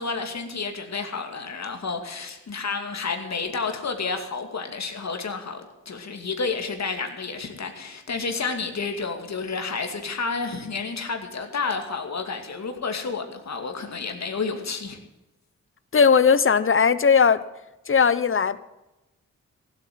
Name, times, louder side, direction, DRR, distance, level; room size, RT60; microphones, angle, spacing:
voice 1, 0.0-15.0, left 4 dB, 60° left, 5 dB, 2.4 m, -30 dB
voice 2, 15.9-17.4 17.9-18.6, left 6 dB, 45° left, 15 dB, 0.9 m, -18 dB
16.0 x 8.4 x 7.6 m, 0.99 s
cardioid pair, 75°, 30 cm